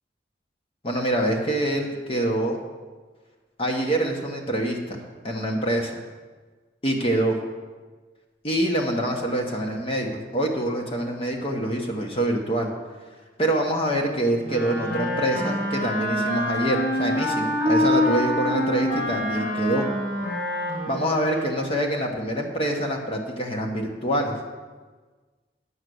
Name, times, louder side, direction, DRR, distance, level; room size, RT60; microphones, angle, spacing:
voice 1, 0.8-2.6 3.6-6.0 6.8-7.4 8.4-12.7 13.4-19.8 20.9-24.3, right 1 dB, 35° left, 0 dB, 1.2 m, -25 dB
Wind instrument woodwind instrument, 14.4-21.8, left 1 dB, 55° left, 3.9 m, -26 dB
9.7 x 6.6 x 7.8 m, 1.4 s
head